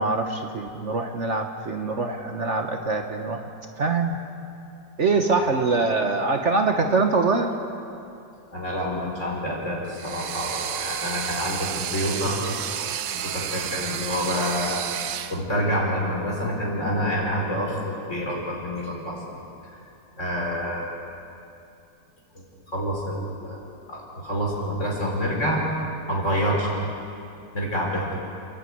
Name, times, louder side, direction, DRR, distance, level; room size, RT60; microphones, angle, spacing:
voice 1, 0.0-3.4 3.8-4.2 5.0-7.5, right 3 dB, 50° right, 4 dB, 1.4 m, -23 dB
voice 2, 8.5-12.4 13.1-19.4 19.7-19.8 20.2-21.1 22.4-22.5 22.7-23.6 23.9-25.6 26.1-26.8 27.5-28.1, equal, 45° left, -3 dB, 5.2 m, -27 dB
sound 1, 9.9-15.4, right 9 dB, 75° right, 1.2 m, -31 dB
29.0 x 11.5 x 9.4 m, 2.6 s
omnidirectional pair, 1.7 m